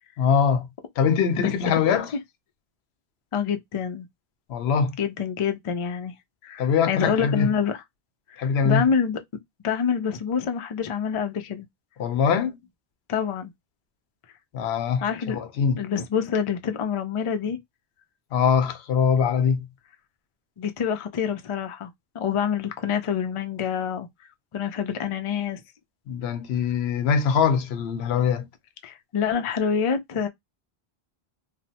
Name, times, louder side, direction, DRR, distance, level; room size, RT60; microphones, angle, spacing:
voice 1, 0.2-0.7 1.0-2.1 4.5-4.9 6.6-7.5 8.4-8.9 12.0-12.6 14.5-15.8 18.3-19.7 26.1-28.5, left 6 dB, 85° left, 0.8 m, -22 dB
voice 2, 3.3-4.1 5.0-6.1 6.4-7.8 8.3-9.2 9.6-11.7 13.1-13.5 15.0-15.4 15.8-17.6 20.6-24.1 24.5-25.6 28.8-30.3, left 7 dB, 50° left, 0.4 m, -26 dB
3.1 x 2.1 x 2.7 m
omnidirectional pair, 1.0 m